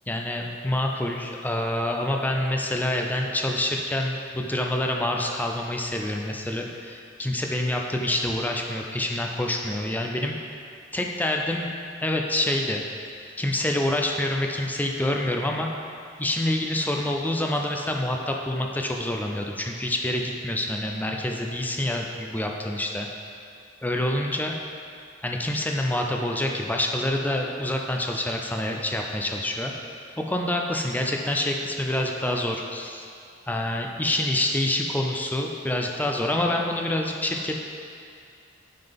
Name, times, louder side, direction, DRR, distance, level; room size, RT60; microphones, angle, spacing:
voice 1, 0.1-10.4 10.9-11.7 12.0-12.8 13.4-15.7 16.2-23.1 23.8-24.6 25.2-29.7 30.2-33.0 33.5-37.6, left 1 dB, 10° left, 1 dB, 0.5 m, -27 dB
9.2 x 3.9 x 5.2 m, 2.4 s
head